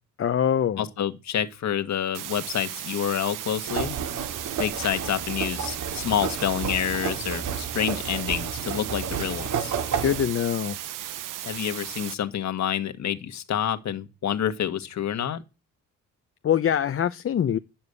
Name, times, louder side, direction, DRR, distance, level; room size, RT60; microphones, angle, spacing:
voice 1, 0.2-0.9 10.0-10.8 16.4-17.6, left 9 dB, 45° left, 0.7 m, -23 dB
voice 2, 0.8-4.0 4.6-9.7 11.4-15.4, left 9 dB, 60° left, 1.5 m, -28 dB
sound 1, 2.1-12.1, right 12 dB, 85° right, 1.0 m, -36 dB
sound 2, 3.7-10.3, right 7 dB, 65° right, 2.4 m, -31 dB
10.5 x 7.1 x 8.1 m
cardioid pair, 105°, 31 cm